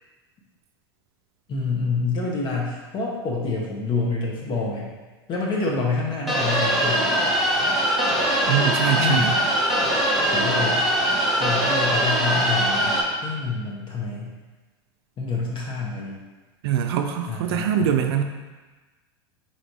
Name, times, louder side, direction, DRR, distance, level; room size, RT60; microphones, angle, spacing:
voice 1, 1.5-4.9 5.3-7.1 9.0-9.3 10.3-10.8 11.4-14.3 15.2-16.2 17.3-18.0, left 3 dB, 35° left, -2 dB, 0.8 m, -27 dB
sound 1, 6.3-13.0, equal, ahead, 0.7 m, -22 dB
voice 2, 8.5-9.3 16.6-18.2, right 9 dB, 75° right, 5 dB, 0.4 m, -23 dB
4.1 x 2.6 x 4.6 m, 1.2 s
supercardioid pair, 115°, 13 cm